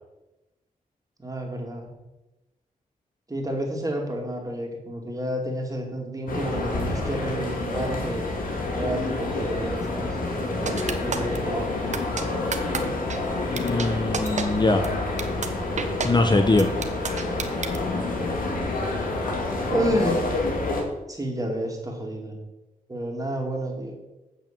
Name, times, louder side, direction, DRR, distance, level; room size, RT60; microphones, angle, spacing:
voice 1, 1.2-1.9 3.3-8.4 8.7-12.0 19.7-20.4 21.1-22.4 22.9-23.9, right 1 dB, 25° right, 1 dB, 2.7 m, -30 dB
sound 1, 6.3-20.8, left 2 dB, 75° left, 2.2 m, -28 dB
sound 2, 10.7-11.4 11.9-12.2 12.5-12.8 13.1-13.2 13.6-13.9 14.1-14.4 14.8-14.9 15.2-15.5 15.8-16.1 16.6-17.8, right 5 dB, 55° right, 1.1 m, -29 dB
voice 2, 13.5-14.9 16.0-16.7, left 2 dB, 30° left, 6 dB, 0.9 m, -22 dB
8.4 x 6.2 x 6.8 m, 1.0 s
cardioid pair, 65°, 15 cm